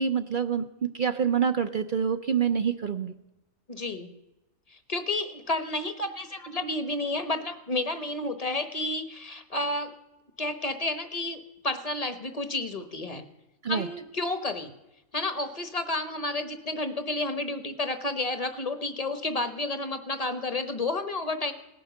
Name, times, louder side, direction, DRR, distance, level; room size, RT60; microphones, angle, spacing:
voice 1, 0.0-3.1 13.6-13.9, right 7 dB, 50° right, 8 dB, 0.7 m, -26 dB
voice 2, 3.7-4.1 4.9-9.9 10.4-13.2 13.7-14.7 15.1-21.5, left 2 dB, 30° left, 10 dB, 1.1 m, -31 dB
18.0 x 10.0 x 7.0 m, 0.96 s
omnidirectional pair, 1.4 m